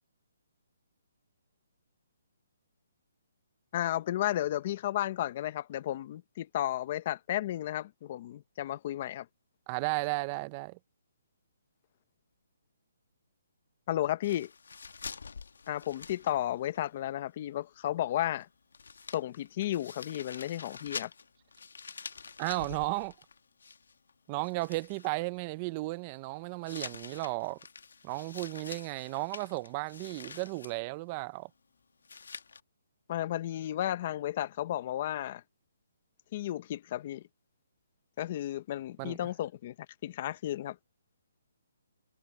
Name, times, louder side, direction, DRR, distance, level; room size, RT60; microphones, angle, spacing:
voice 1, 3.7-9.3 13.9-14.5 15.7-18.5 19.1-21.1 33.1-35.4 36.3-37.2 38.2-39.7 40.0-40.8, left 13 dB, 25° left, 0.7 m, -33 dB
voice 2, 9.7-10.8 22.4-23.1 24.3-27.6 28.0-31.5 39.0-39.3, right 24 dB, 20° right, 0.4 m, -34 dB
sound 1, 14.2-16.8 17.1-17.2 18.4-18.5 18.7-24.1 24.4-25.1 26.7-30.8 32.0-32.6, left 5 dB, 75° left, 1.1 m, -46 dB
hypercardioid pair, 175°, 0 cm